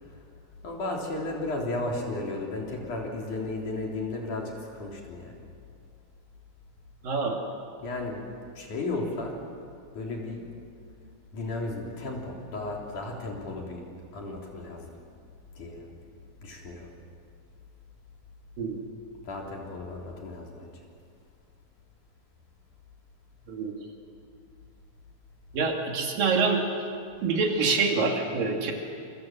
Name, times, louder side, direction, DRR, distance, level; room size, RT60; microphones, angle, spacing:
voice 1, 0.6-5.4 7.8-8.2 8.5-9.4 9.9-10.5 11.3-13.8 14.1-14.9 15.6-15.9 16.4-16.9 19.3-20.7, left 2 dB, 55° left, -1 dB, 4.8 m, -34 dB
voice 2, 7.0-7.4 18.6-18.8 23.5-23.7 25.5-26.6 27.2-28.7, right 4 dB, 65° right, 1 dB, 4.1 m, -26 dB
28.0 x 25.0 x 7.6 m, 2.4 s
omnidirectional pair, 4.4 m